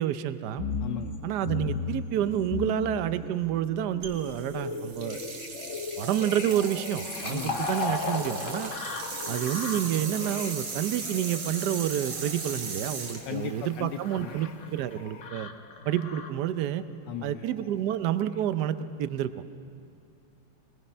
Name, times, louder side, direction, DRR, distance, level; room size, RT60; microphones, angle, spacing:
voice 1, 0.0-0.7 1.2-5.2 6.0-8.7 9.3-15.5 15.9-16.8 17.2-19.5, right 11 dB, 70° right, 13 dB, 1.2 m, -29 dB
sound 1, 0.6-16.5 17.1-17.8 18.3-18.4, left 5 dB, 50° left, 1.1 m, -38 dB
voice 2, 0.8-1.1 7.3-7.6 13.3-14.4 17.1-17.4, left 10 dB, 75° left, 7 dB, 1.3 m, -36 dB
sound 2, 4.0-14.2, right 4 dB, 90° right, 2.5 m, -38 dB
Fill (with liquid), 6.6-14.0, left 3 dB, 30° left, 1.7 m, -38 dB
23.5 x 20.0 x 5.6 m, 2.4 s
omnidirectional pair, 2.0 m